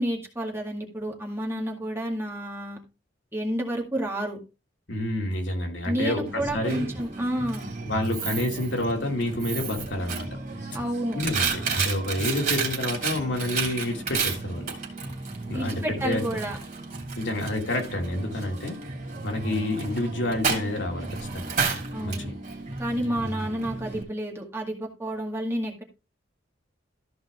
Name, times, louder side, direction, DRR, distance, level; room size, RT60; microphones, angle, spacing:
voice 1, 0.0-2.8 3.3-4.4 5.8-7.7 10.7-11.2 15.5-16.6 21.9-22.3 22.8-25.8, right 1 dB, 15° right, 2.0 m, -30 dB
voice 2, 4.9-6.9 7.8-10.3 11.1-14.7 15.5-16.2 17.2-18.9 19.2-21.5 22.0-22.3, left 1 dB, 70° left, 2.4 m, -29 dB
Coin (dropping), 6.3-24.0, right 4 dB, 45° right, 3.1 m, -32 dB
14.0 x 5.2 x 3.5 m
head